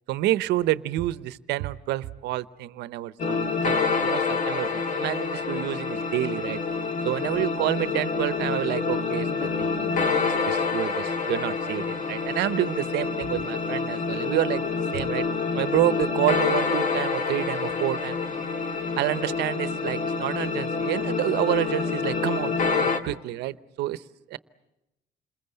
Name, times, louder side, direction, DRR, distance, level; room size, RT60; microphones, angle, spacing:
voice 1, 0.1-6.6 7.0-15.2 15.5-18.2 19.0-24.4, right 15 dB, 85° right, 16 dB, 0.9 m, -29 dB
sound 1, 3.2-23.0, left 4 dB, 50° left, 2.0 m, -27 dB
28.5 x 21.0 x 7.9 m, 0.95 s
cardioid pair, 110°, 17 cm